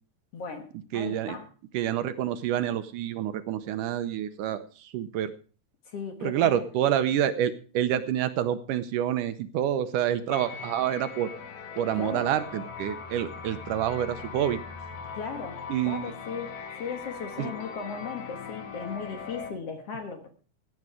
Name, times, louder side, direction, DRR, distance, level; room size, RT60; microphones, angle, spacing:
voice 1, 0.3-1.5 5.9-6.6 12.0-12.3 15.1-20.3, left 5 dB, 55° left, 6 dB, 2.1 m, -37 dB
voice 2, 0.9-1.4 1.7-5.3 6.2-11.3 11.8-14.6 15.7-16.1 17.4-17.5, right 10 dB, 75° right, 11 dB, 2.2 m, -28 dB
sound 1, 10.3-19.5, left 5 dB, 75° left, 3.4 m, -40 dB
17.0 x 9.5 x 4.9 m, 0.39 s
omnidirectional pair, 4.0 m